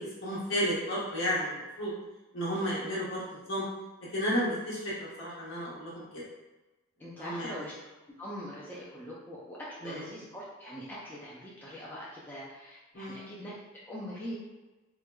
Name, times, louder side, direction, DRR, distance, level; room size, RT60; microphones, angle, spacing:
voice 1, 0.0-1.9 2.3-3.6 4.1-6.2 7.0-7.7 9.8-10.1 12.9-13.3, equal, 65° left, -8 dB, 1.2 m, -33 dB
voice 2, 7.0-7.7 8.2-13.5 13.9-14.4, equal, 10° left, -6 dB, 0.4 m, -42 dB
4.4 x 2.1 x 2.2 m, 1.1 s
head